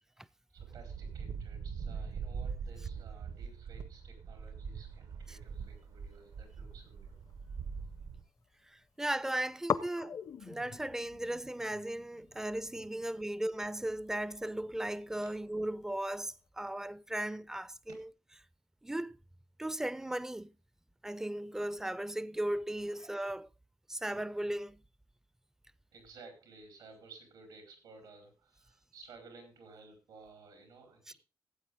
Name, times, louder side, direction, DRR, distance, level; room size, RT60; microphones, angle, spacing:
voice 1, 0.5-7.2 17.9-18.0 25.9-31.1, right 4 dB, 90° right, 4.4 m, -55 dB
sound 1, 0.6-8.2, right 6 dB, 70° right, 1.1 m, -42 dB
sound 2, 6.1-7.9 8.2-8.9 9.1-9.2 9.6-16.5, left 7 dB, 55° left, 0.7 m, -43 dB
voice 2, 8.7-10.2 10.4-18.0 18.8-19.2 19.6-20.5 21.0-23.5 23.9-24.8 31.1-31.2, right 1 dB, 5° right, 0.5 m, -36 dB
16.5 x 8.2 x 3.7 m
cardioid pair, 100°, 7 cm